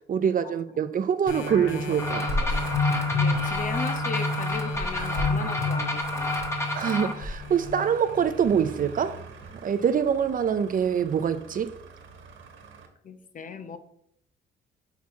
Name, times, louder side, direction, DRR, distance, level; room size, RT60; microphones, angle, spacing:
voice 1, 0.1-2.4 6.7-9.2 9.6-11.8, right 7 dB, 45° right, 0.5 m, -25 dB
sound 1, 1.3-8.5 9.0-9.1, left 3 dB, 75° left, 2.0 m, -29 dB
sound 2, 1.4-12.9, right 5 dB, 80° right, 1.3 m, -46 dB
sound 3, 2.0-7.1, left 1 dB, 15° left, 1.3 m, -31 dB
voice 2, 3.1-6.4 13.0-13.8, left 4 dB, 40° left, 0.8 m, -37 dB
5.9 x 4.3 x 4.7 m
cardioid pair, 90°, 20 cm